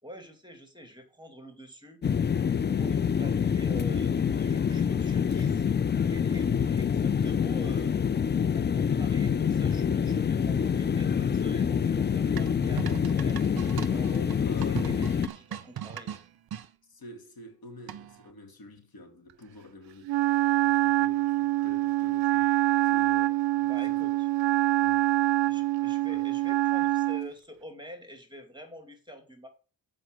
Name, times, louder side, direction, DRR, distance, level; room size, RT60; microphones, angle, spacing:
voice 1, 0.0-2.0 2.5-5.6 6.1-8.0 8.5-13.4 13.9-16.2 23.6-24.3 25.5-29.5, equal, 10° right, 2.5 m, -46 dB
sound 1, 2.0-15.3, left 7 dB, 25° left, 0.4 m, -26 dB
sound 2, 12.4-16.7 17.9-18.3, right 10 dB, 55° right, 0.8 m, -39 dB
voice 2, 14.4-14.8 16.9-24.1 24.8-25.2 26.1-26.3, left 2 dB, 55° left, 2.3 m, -48 dB
Wind instrument woodwind instrument, 20.1-27.3, right 17 dB, 85° right, 0.5 m, -25 dB
7.8 x 5.3 x 6.5 m
cardioid pair, 60°, 44 cm